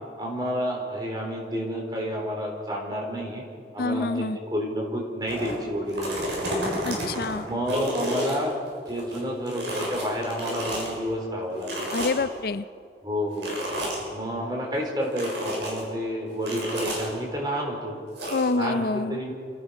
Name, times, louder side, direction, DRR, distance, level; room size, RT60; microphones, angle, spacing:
voice 1, 0.2-3.4 3.7-6.6 7.5-8.6 8.9-11.9 13.0-13.5 14.1-17.9 18.5-19.3, equal, 25° right, 0 dB, 4.3 m, -30 dB
voice 2, 3.8-4.4 6.8-7.5 11.9-12.6 18.3-19.2, left 3 dB, 55° left, 13 dB, 0.5 m, -27 dB
sound 1, 5.3-5.5 5.9-9.2 9.5-10.9 11.6-12.4 13.4-14.0 15.1-15.8 16.4-17.1 18.2-18.5, equal, 80° right, 7.1 m, -30 dB
28.5 x 16.0 x 5.9 m, 2.3 s
head